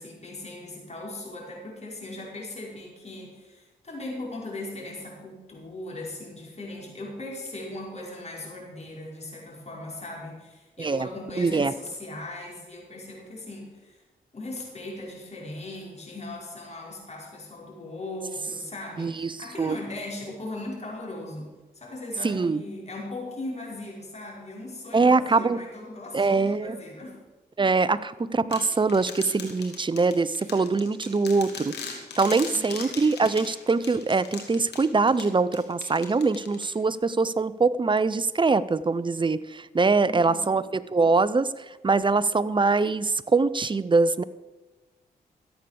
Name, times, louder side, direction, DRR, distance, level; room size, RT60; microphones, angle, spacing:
voice 1, 0.0-14.0 14.3-27.3 32.4-32.9 40.0-40.6, left 2 dB, 40° left, -2 dB, 5.8 m, -39 dB
voice 2, 11.4-11.7 19.0-19.8 22.2-22.6 24.9-25.6 26.1-26.8 27.6-44.2, right 4 dB, 30° right, 16 dB, 0.7 m, -23 dB
sound 1, 28.5-37.0, left 5 dB, 85° left, 2.6 m, -40 dB
14.0 x 8.5 x 7.0 m, 1.2 s
cardioid pair, 55°, 17 cm